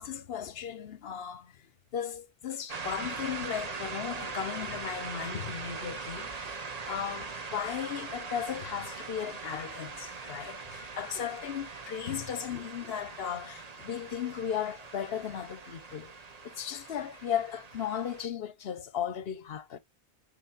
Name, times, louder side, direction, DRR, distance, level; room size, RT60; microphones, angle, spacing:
voice 1, 0.0-16.1 16.4-19.8, left 9 dB, 75° left, 1.0 m, -36 dB
sound 1, 2.7-18.3, right 4 dB, 40° right, 0.9 m, -41 dB
10.0 x 4.5 x 2.5 m
omnidirectional pair, 1.0 m